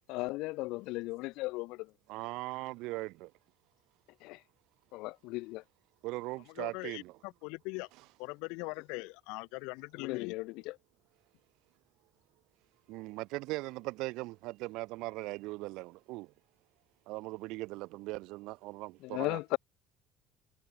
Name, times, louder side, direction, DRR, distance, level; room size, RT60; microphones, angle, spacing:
voice 1, 0.1-1.9 4.2-4.4 4.9-5.6 10.0-10.7 19.0-19.6, left 22 dB, 70° left, 2.7 m, -36 dB
voice 2, 2.1-3.3 6.0-7.1 12.9-16.3 17.1-19.4, right 21 dB, 70° right, 5.8 m, -39 dB
voice 3, 6.5-7.9 8.2-10.3, left 29 dB, 90° left, 5.8 m, -41 dB
cardioid pair, 170°, 0 cm